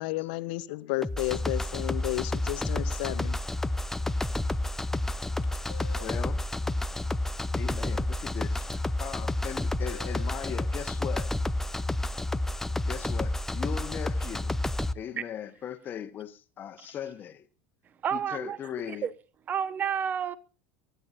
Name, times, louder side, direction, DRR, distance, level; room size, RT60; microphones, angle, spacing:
voice 1, 0.0-3.4, left 19 dB, 70° left, 1.0 m, -32 dB
sound 1, 1.0-14.9, left 1 dB, 5° left, 0.7 m, -30 dB
sound 2, 5.4-6.3 8.6-8.8 9.8-10.4, left 7 dB, 85° left, 1.7 m, -46 dB
voice 2, 6.0-6.5 7.5-11.3 12.9-14.6 14.9-17.5 18.1-19.1, left 9 dB, 40° left, 1.5 m, -39 dB
voice 3, 18.0-18.6 19.0-19.1 19.5-20.4, right 8 dB, 35° right, 1.2 m, -29 dB
24.0 x 10.5 x 2.7 m
hypercardioid pair, 90°, 5 cm